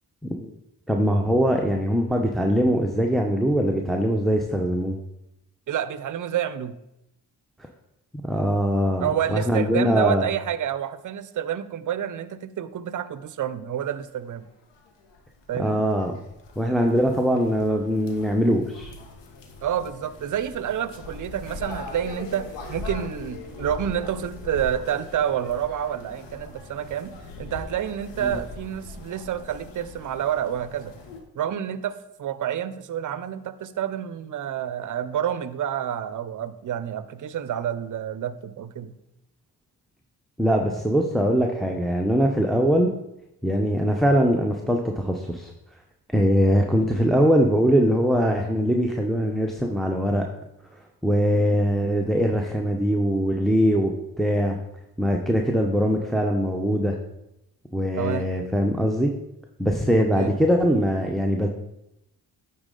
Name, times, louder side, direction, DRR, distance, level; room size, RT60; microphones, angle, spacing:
voice 1, 0.9-5.0 8.2-10.3 15.6-16.1 16.6-18.9 28.2-28.4 40.4-42.9 43.4-45.5 46.1-50.2 51.0-53.9 54.2-54.6 55.0-57.0 57.7-59.1 59.6-61.5, equal, ahead, 2 dB, 0.7 m, -22 dB
voice 2, 5.7-6.8 9.0-14.5 15.5-15.9 19.6-31.0 31.4-38.9 58.0-58.3 59.9-60.3, right 9 dB, 45° right, 14 dB, 0.6 m, -29 dB
sound 1, 14.4-14.5 14.7-31.2, left 3 dB, 80° left, 1.1 m, -41 dB
8.8 x 4.1 x 3.8 m, 0.86 s
supercardioid pair, 55°, 42 cm